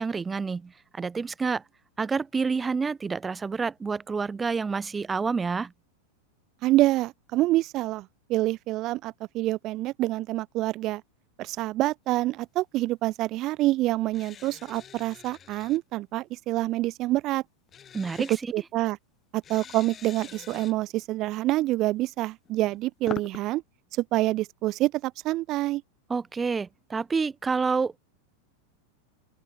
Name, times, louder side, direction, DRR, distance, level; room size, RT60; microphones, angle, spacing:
voice 1, 0.0-1.6 2.0-5.7 17.9-18.5 26.1-28.0, right 5 dB, 15° right, 0.7 m, -28 dB
voice 2, 6.6-11.0 11.4-17.4 18.5-19.0 19.3-23.6 24.0-25.8, right 17 dB, 35° right, 0.3 m, -27 dB
sound 1, 14.1-15.8 17.7-18.4 19.4-20.7 22.5-23.4, left 8 dB, 25° left, 2.2 m, -43 dB
open air
figure-of-eight pair, 90°, 0 cm